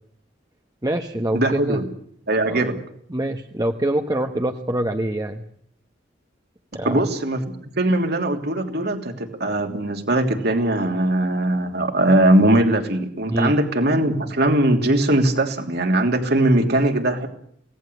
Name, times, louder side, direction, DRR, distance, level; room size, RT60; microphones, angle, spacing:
voice 1, 0.8-1.8 2.4-2.7 3.1-5.4 6.7-7.1 13.3-13.5, right 1 dB, 20° right, 5 dB, 1.2 m, -25 dB
voice 2, 1.3-1.8 2.3-2.8 6.7-17.3, right 1 dB, 60° right, 5 dB, 3.1 m, -20 dB
26.0 x 18.0 x 8.1 m, 0.66 s
head